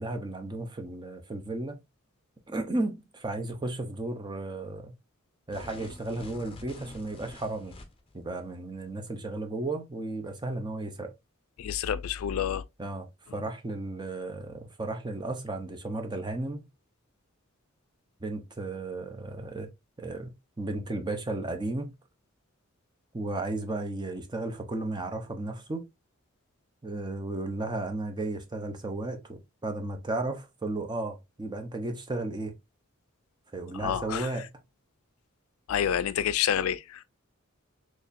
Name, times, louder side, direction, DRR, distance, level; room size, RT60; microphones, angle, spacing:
voice 1, 0.0-1.8 2.5-4.9 5.5-7.7 8.1-11.1 12.8-16.6 18.2-19.7 20.0-21.9 23.1-25.8 26.8-32.5 33.5-34.5, right 2 dB, 20° right, 0.7 m, -34 dB
sound 1, 5.5-8.2, left 2 dB, 25° left, 0.7 m, -47 dB
voice 2, 11.6-12.6 33.7-34.3 35.7-37.0, left 9 dB, 75° left, 0.3 m, -28 dB
4.2 x 3.1 x 2.5 m
head